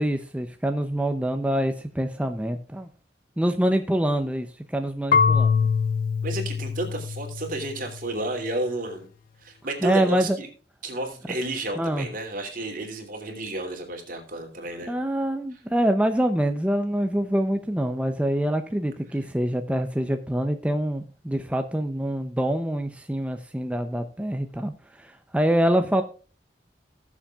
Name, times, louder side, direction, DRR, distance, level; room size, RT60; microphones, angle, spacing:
voice 1, 0.0-2.9 3.4-5.7 9.8-10.4 11.8-12.1 14.9-26.0, right 1 dB, 5° right, 6 dB, 0.6 m, -25 dB
Marimba xylophone / Wood, 5.1-8.0, left 5 dB, 50° left, 0.4 m, -23 dB
voice 2, 6.2-9.1 9.4-10.5 10.8-14.9, right 1 dB, 50° right, 3 dB, 2.9 m, -31 dB
19.0 x 7.2 x 2.4 m, 0.37 s
head